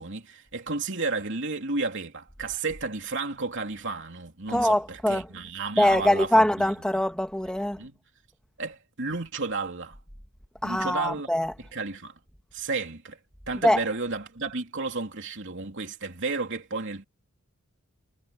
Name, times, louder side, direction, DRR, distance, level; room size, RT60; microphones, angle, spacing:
voice 1, 0.0-6.5 7.8-8.0 8.6-10.0 10.6-11.3 11.6-12.2 12.5-13.2 13.5-17.0, right 3 dB, 55° right, 3.2 m, -32 dB
voice 2, 4.5-5.3 5.8-7.8 10.6-11.5 13.6-13.8, left 1 dB, 5° left, 1.8 m, -23 dB
head